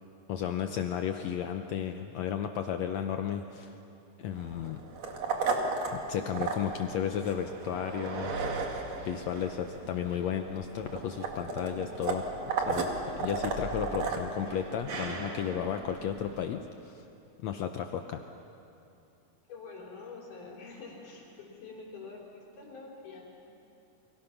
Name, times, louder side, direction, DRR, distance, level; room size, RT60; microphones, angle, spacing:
voice 1, 0.3-3.7 4.2-4.8 5.9-8.4 9.1-12.3 12.7-12.9 13.2-17.1 17.4-18.2, left 8 dB, 70° left, 6 dB, 1.9 m, -33 dB
sound 1, 4.3-16.4, right 4 dB, 60° right, 3.1 m, -35 dB
voice 2, 19.5-23.3, left 4 dB, 90° left, -2 dB, 5.6 m, -46 dB
30.0 x 24.5 x 5.9 m, 2.7 s
omnidirectional pair, 3.5 m